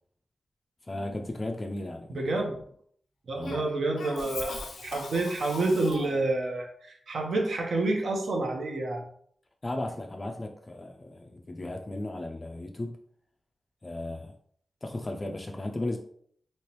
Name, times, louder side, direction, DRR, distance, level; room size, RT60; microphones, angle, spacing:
voice 1, 0.8-2.3 3.4-3.6 9.6-13.0 13.8-14.3 14.8-16.0, left 2 dB, 25° left, 3 dB, 0.3 m, -35 dB
voice 2, 2.1-2.6 3.3-9.0, right 2 dB, 75° right, 1 dB, 0.8 m, -29 dB
Cough, 3.4-6.4, left 3 dB, 90° left, 0.6 m, -40 dB
3.2 x 2.9 x 3.0 m, 0.62 s
wide cardioid pair, 135°, 0 cm